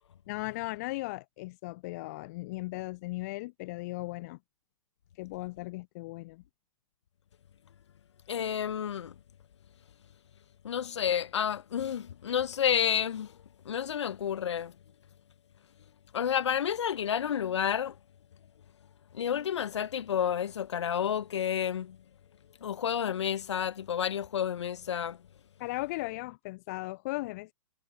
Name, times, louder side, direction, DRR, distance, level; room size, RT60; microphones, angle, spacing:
voice 1, 0.3-4.4 5.2-6.4 25.6-27.5, left 21 dB, 30° left, 0.6 m, -37 dB
voice 2, 8.3-9.1 10.6-13.3 13.6-14.7 16.1-17.9 19.1-22.0 22.6-25.2, left 9 dB, 55° left, 1.1 m, -30 dB
figure-of-eight pair, 115°, 18 cm